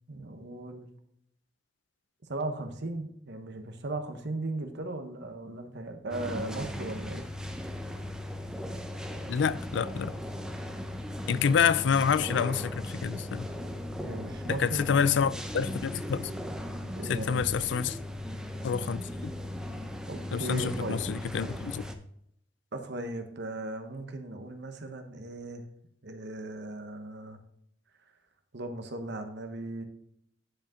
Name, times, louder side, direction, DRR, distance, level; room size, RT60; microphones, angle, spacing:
voice 1, 0.1-0.9 2.3-7.2 14.0-15.1 17.0-17.4 20.1-21.0 22.7-25.6 26.0-27.4 28.5-29.8, right 2 dB, 65° right, 1.1 m, -37 dB
sound 1, 6.1-22.0, left 1 dB, 5° right, 0.7 m, -37 dB
voice 2, 9.3-10.1 11.3-13.5 14.5-16.3 17.0-18.0 18.6-19.3 20.3-21.8, left 6 dB, 70° left, 0.4 m, -28 dB
10.5 x 5.2 x 3.8 m
head